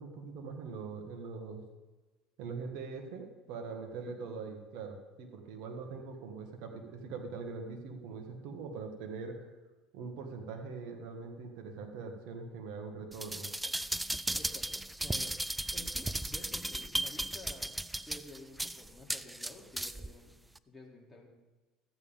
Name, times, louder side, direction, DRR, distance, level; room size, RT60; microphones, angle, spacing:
voice 1, 0.0-1.6 2.4-9.5 9.9-13.5, right 4 dB, 70° right, 3 dB, 1.7 m, -42 dB
sound 1, 13.1-20.1 20.6-20.7, right 1 dB, 5° right, 0.3 m, -36 dB
voice 2, 14.3-15.4 15.7-17.7 18.1-20.3 20.7-21.3, left 2 dB, 10° left, -3 dB, 2.7 m, -52 dB
13.5 x 9.0 x 3.6 m, 1.2 s
supercardioid pair, 110°, 0 cm